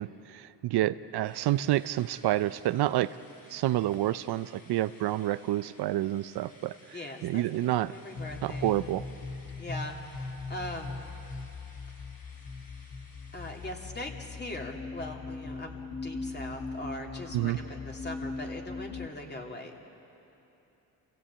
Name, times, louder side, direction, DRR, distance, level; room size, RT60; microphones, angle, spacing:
voice 1, 0.0-3.2 3.5-7.9 8.4-9.0 17.3-17.6, right 14 dB, 70° right, 14 dB, 0.6 m, -29 dB
sound 1, 1.2-13.7, left 2 dB, 55° left, 5.4 m, -57 dB
voice 2, 6.9-8.7 9.6-11.0 13.3-19.8, left 1 dB, 25° left, 1 dB, 3.0 m, -41 dB
sound 2, 8.2-19.1, left 3 dB, 80° left, 1.9 m, -40 dB
28.0 x 16.5 x 8.7 m, 3.0 s
cardioid pair, 90°, 40 cm